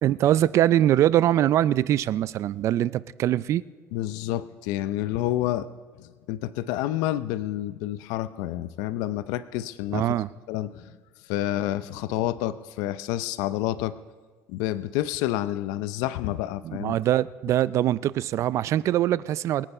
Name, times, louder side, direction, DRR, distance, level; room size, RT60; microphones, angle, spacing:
voice 1, 0.0-3.6 9.9-10.3 16.6-19.6, right 12 dB, 50° right, 19 dB, 0.4 m, -23 dB
voice 2, 3.9-5.7 6.0-10.2 10.5-11.0 11.3-14.0 14.5-17.0, left 14 dB, 85° left, 14 dB, 0.5 m, -29 dB
22.5 x 9.1 x 5.5 m, 1.4 s
cardioid pair, 125°, 6 cm